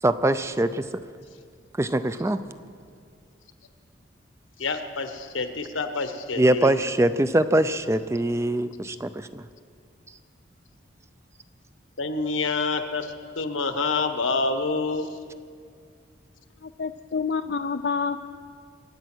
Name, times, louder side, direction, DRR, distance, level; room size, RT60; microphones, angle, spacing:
voice 1, 0.0-0.9 1.7-2.4 6.4-9.4, right 1 dB, 15° right, 12 dB, 0.3 m, -23 dB
voice 2, 4.6-6.8 12.0-15.2, left 3 dB, 85° left, 8 dB, 1.2 m, -27 dB
voice 3, 16.6-18.3, left 5 dB, 55° left, 8 dB, 0.4 m, -28 dB
24.5 x 8.7 x 6.2 m, 2.2 s
head